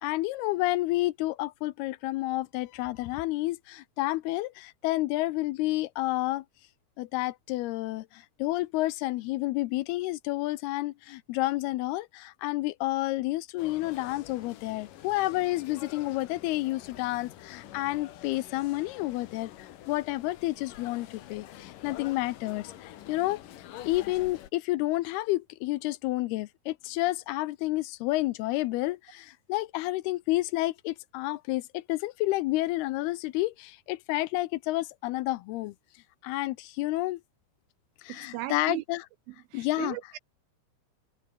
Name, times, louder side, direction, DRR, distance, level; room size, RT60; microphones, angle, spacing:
voice 1, 0.0-6.4 7.0-23.4 23.8-35.7 36.2-37.2 38.0-39.1 39.5-40.0, left 18 dB, 80° left, 2.6 m, -30 dB
sound 1, 13.6-24.5, left 12 dB, 65° left, 2.6 m, -47 dB
voice 2, 38.1-38.8 39.5-40.2, right 17 dB, 85° right, 2.2 m, -37 dB
omnidirectional pair, 4.8 m